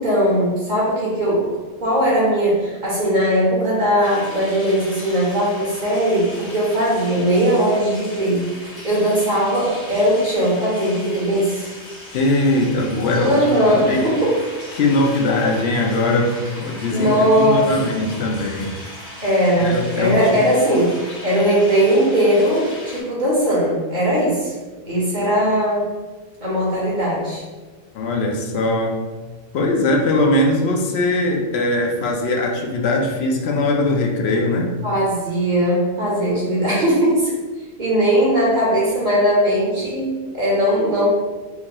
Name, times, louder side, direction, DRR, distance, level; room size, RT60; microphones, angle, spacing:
voice 1, 0.0-1.5 1.8-8.5 8.8-11.7 13.2-14.3 16.9-17.7 19.2-24.6 24.8-25.8 26.4-27.4 34.8-37.3 37.8-41.1, equal, 45° right, -6 dB, 1.1 m, -19 dB
sound 1, 4.0-23.0, left 1 dB, 50° left, 1.1 m, -38 dB
voice 2, 12.1-13.3 13.6-14.0 14.7-18.7 19.6-20.2 27.9-29.0 29.5-34.7, left 2 dB, 75° left, 1 dB, 0.8 m, -20 dB
4.5 x 2.9 x 2.2 m, 1.3 s
omnidirectional pair, 1.1 m